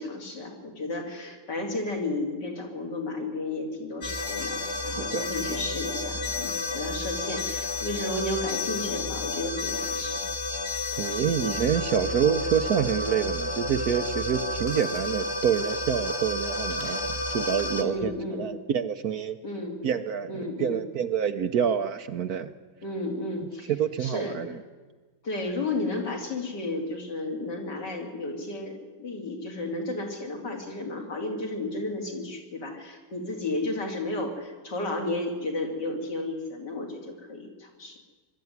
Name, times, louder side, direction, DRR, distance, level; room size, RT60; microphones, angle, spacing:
voice 1, 0.0-10.2 17.8-18.5 19.4-19.8 20.3-20.8 22.8-23.7 24.0-24.4 25.2-38.0, left 2 dB, 65° left, 1 dB, 3.7 m, -33 dB
sound 1, 4.0-17.8, left 2 dB, 35° left, 1.7 m, -31 dB
voice 2, 4.6-5.3 11.0-19.4 19.8-20.3 20.6-22.5 23.7-24.6, right 8 dB, 60° right, 9 dB, 1.1 m, -27 dB
22.5 x 12.5 x 9.5 m, 1.4 s
omnidirectional pair, 2.0 m